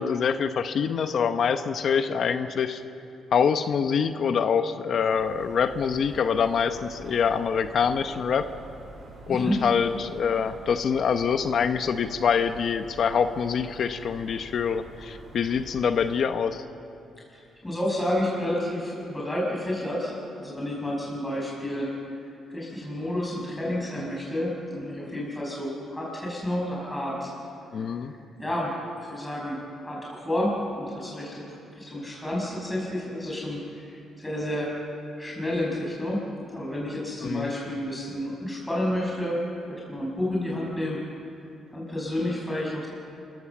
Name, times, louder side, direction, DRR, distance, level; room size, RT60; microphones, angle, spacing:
voice 1, 0.0-2.8 3.3-8.5 9.3-16.6 27.7-28.1 37.2-37.5, left 6 dB, 60° left, 9 dB, 0.9 m, -25 dB
sound 1, 5.1-16.2, right 2 dB, 55° right, 6.4 m, -47 dB
voice 2, 9.3-9.6 17.3-21.9 22.2-27.3 27.8-28.7 29.0-34.8 35.2-39.4 39.7-41.0 41.7-42.9, left 1 dB, 10° left, -4 dB, 6.4 m, -30 dB
25.5 x 16.0 x 7.3 m, 2.7 s
cardioid pair, 90°, 0 cm